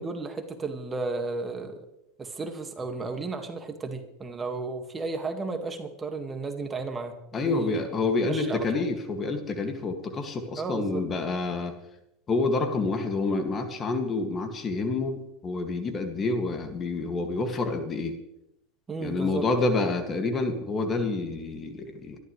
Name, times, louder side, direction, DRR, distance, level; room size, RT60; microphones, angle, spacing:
voice 1, 0.0-1.9 2.2-7.1 7.4-7.9 8.3-8.8 10.6-11.0 18.9-19.5, right 3 dB, 20° right, 5 dB, 1.9 m, -33 dB
voice 2, 7.3-11.7 12.3-18.2 19.0-22.2, left 3 dB, 30° left, 5 dB, 2.2 m, -28 dB
25.0 x 12.5 x 3.3 m, 0.84 s
supercardioid pair, 105°, 0 cm